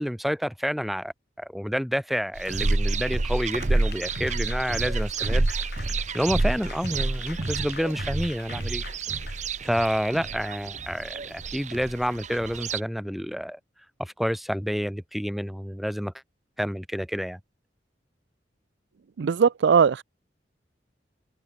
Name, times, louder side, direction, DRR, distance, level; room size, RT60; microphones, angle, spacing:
voice 1, 0.0-5.5 6.1-8.8 9.6-13.6 14.0-16.1 16.6-17.4, equal, ahead, 1.3 m, -29 dB
sound 1, 2.4-12.8, right 3 dB, 40° right, 0.8 m, -28 dB
Applause / Crowd, 3.1-10.3, left 6 dB, 60° left, 7.1 m, -46 dB
voice 2, 19.2-20.0, right 6 dB, 75° right, 0.4 m, -19 dB
head